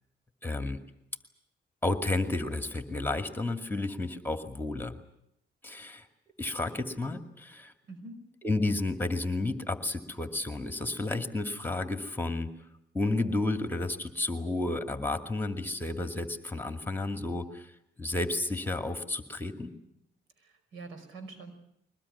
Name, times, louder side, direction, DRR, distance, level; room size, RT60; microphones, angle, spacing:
voice 1, 0.4-0.8 1.8-4.9 5.6-6.0 6.4-7.7 8.4-12.5 12.9-17.7 18.0-19.7, left 2 dB, 10° left, 7 dB, 2.3 m, -31 dB
voice 2, 7.9-8.2 20.4-21.5, right 3 dB, 85° right, 9 dB, 5.2 m, -45 dB
22.5 x 20.0 x 9.9 m, 0.78 s
cardioid pair, 90°, 20 cm